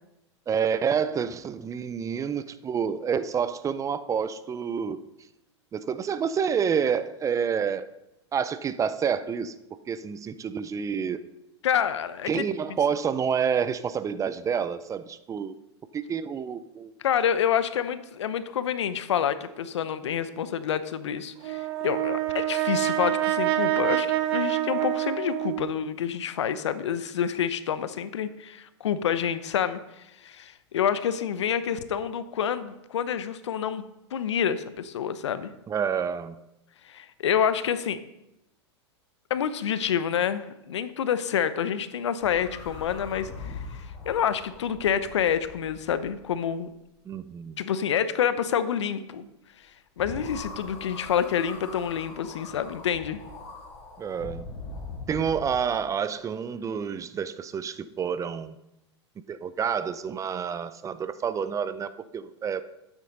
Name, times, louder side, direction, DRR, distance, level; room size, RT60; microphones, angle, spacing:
voice 1, 0.5-5.0 5.7-7.9 8.3-9.5 9.9-11.2 12.3-15.5 15.9-16.9 35.7-36.4 47.1-47.6 54.0-54.5 55.1-58.6 59.3-62.6, right 7 dB, 20° right, 13 dB, 0.6 m, -28 dB
voice 2, 11.6-12.4 17.0-29.8 30.2-33.8 34.1-35.5 36.9-38.0 39.3-43.5 44.1-46.7 47.6-49.2 50.0-53.2, left 8 dB, 75° left, 13 dB, 0.8 m, -28 dB
Brass instrument, 21.4-25.8, right 14 dB, 60° right, 1.0 m, -27 dB
sound 1, 42.2-46.5 50.0-55.6, left 3 dB, 45° left, 3.1 m, -41 dB
12.5 x 9.0 x 4.0 m, 0.88 s
hypercardioid pair, 105°, 15 cm